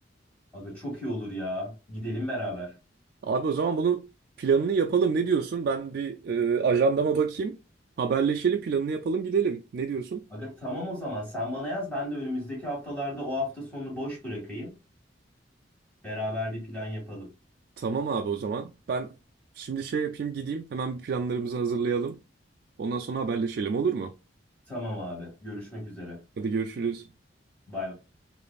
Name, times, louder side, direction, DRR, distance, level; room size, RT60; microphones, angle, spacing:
voice 1, 0.5-2.7 10.3-14.7 16.0-17.3 24.7-26.2 27.7-27.9, left 1 dB, 10° left, 1.9 m, -34 dB
voice 2, 3.2-4.1 4.4-7.6 8.0-10.2 17.8-19.1 19.6-22.2 22.8-24.1 26.4-27.0, right 5 dB, 55° right, 0.3 m, -27 dB
5.0 x 2.5 x 2.3 m
head